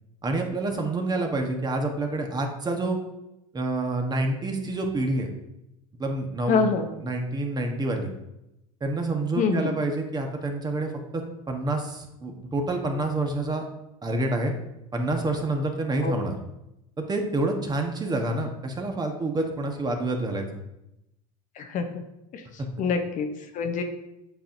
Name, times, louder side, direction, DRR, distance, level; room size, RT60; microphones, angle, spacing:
voice 1, 0.2-3.0 3.5-5.3 6.0-6.6 7.0-8.1 8.8-13.6 14.0-14.5 14.9-16.4 17.0-20.4 22.6-22.7, right 2 dB, 20° right, 3 dB, 1.2 m, -28 dB
voice 2, 6.5-6.9 9.4-9.7 16.0-16.1 21.6-22.0 22.3-22.4 22.8-23.3 23.5-23.8, left 5 dB, 45° left, 6 dB, 0.8 m, -25 dB
8.1 x 5.6 x 2.6 m, 0.89 s
supercardioid pair, 100°, 19 cm